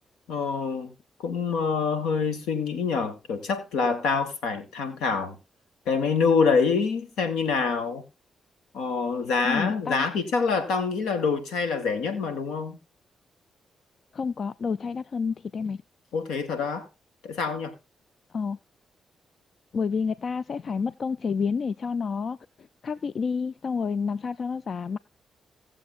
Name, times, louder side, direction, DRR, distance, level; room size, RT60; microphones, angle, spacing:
voice 1, 0.3-0.9 1.2-5.4 5.9-8.0 8.7-12.8 16.1-16.9 17.2-17.7, left 5 dB, 80° left, 1.9 m, -26 dB
voice 2, 9.4-10.0 14.1-15.8 18.3-18.6 19.7-22.4 22.8-25.0, left 5 dB, 55° left, 0.4 m, -29 dB
18.0 x 7.4 x 2.5 m
supercardioid pair, 50°, 0 cm